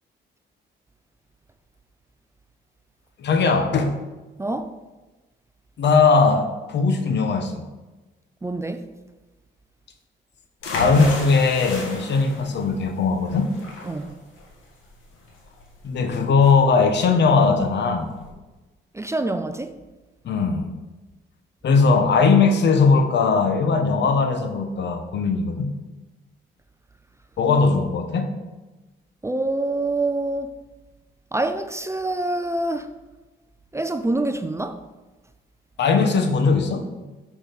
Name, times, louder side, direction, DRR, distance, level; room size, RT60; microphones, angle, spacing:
voice 1, 3.2-4.0 5.8-7.6 10.6-13.5 15.8-18.1 20.2-20.7 21.6-25.7 27.4-28.3 35.8-36.9, left 4 dB, 60° left, 1.1 m, -19 dB
voice 2, 4.4-4.7 8.4-8.9 13.8-14.1 18.9-19.7 29.2-30.5 31.3-32.9 33.7-34.8, right 2 dB, 15° right, 0.5 m, -26 dB
sound 1, 10.6-18.3, left 2 dB, 85° left, 1.8 m, -34 dB
6.3 x 6.1 x 5.3 m
cardioid pair, 90°, 20 cm